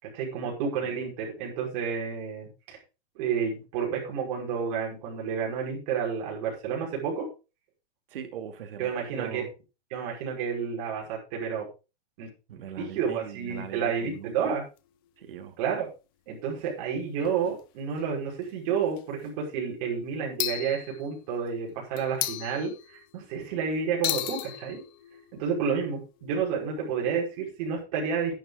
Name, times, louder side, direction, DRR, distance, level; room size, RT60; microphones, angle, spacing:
voice 1, 0.0-2.8 3.2-7.3 8.8-9.4 9.9-11.7 12.2-12.3 12.8-14.6 15.6-15.9 16.3-24.8 25.4-28.4, right 6 dB, 35° right, -2 dB, 5.7 m, -30 dB
voice 2, 8.1-9.5 12.5-14.3 15.2-15.6, right 9 dB, 60° right, 6 dB, 2.5 m, -40 dB
sound 1, 12.9-14.0 14.8-14.9 15.1-15.2 16.6-16.7 17.2-17.6 18.0-18.1 18.8-19.3 20.4-21.5 22.0-23.3 24.0-27.8, left 14 dB, 20° left, 0.6 m, -37 dB
11.0 x 9.5 x 4.0 m, 0.31 s
supercardioid pair, 170°, 32 cm